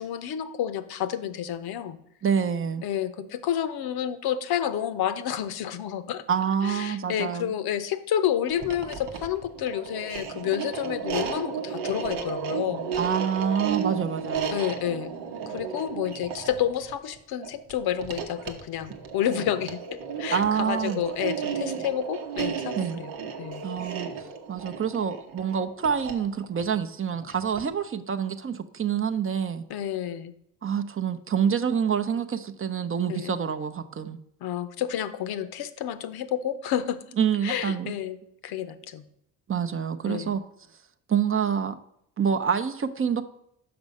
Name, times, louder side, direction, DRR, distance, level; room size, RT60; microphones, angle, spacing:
voice 1, 0.0-2.0 2.8-6.2 6.6-12.9 14.5-15.1 15.5-23.1 23.4-23.6 29.7-30.3 33.1-33.3 34.4-37.0 37.4-38.2 38.4-39.1 40.1-40.3, left 10 dB, 65° left, 13 dB, 0.7 m, -30 dB
voice 2, 2.2-2.8 6.3-7.5 13.0-14.6 20.3-21.0 22.8-23.0 23.6-24.1 24.5-29.6 30.6-34.2 37.2-37.9 39.5-40.4 41.1-41.8 42.2-43.2, right 7 dB, 30° right, 8 dB, 0.6 m, -27 dB
sound 1, 8.5-27.8, right 6 dB, 85° right, 1.0 m, -34 dB
6.0 x 5.4 x 5.3 m, 0.73 s
supercardioid pair, 65°, 40 cm